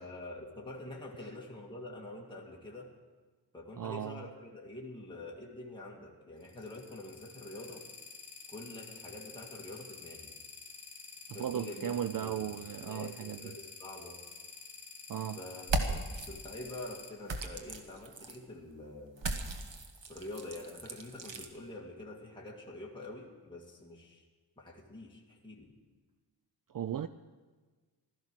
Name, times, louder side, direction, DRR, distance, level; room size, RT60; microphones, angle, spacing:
voice 1, 0.0-2.9 3.5-7.8 8.5-10.3 11.3-14.2 15.4-19.3 20.1-24.2 24.6-25.7, left 2 dB, 10° left, -3 dB, 2.0 m, -46 dB
voice 2, 3.8-4.3 11.3-13.5 15.1-15.4 26.7-27.1, right 9 dB, 50° right, 12 dB, 0.5 m, -36 dB
sound 1, 6.4-17.1, left 5 dB, 40° left, 3.4 m, -49 dB
sound 2, 15.6-16.3 17.3-18.4 19.2-21.5, right 2 dB, 85° right, 1.5 m, -36 dB
16.0 x 13.0 x 6.2 m, 1.4 s
wide cardioid pair, 120°, 43 cm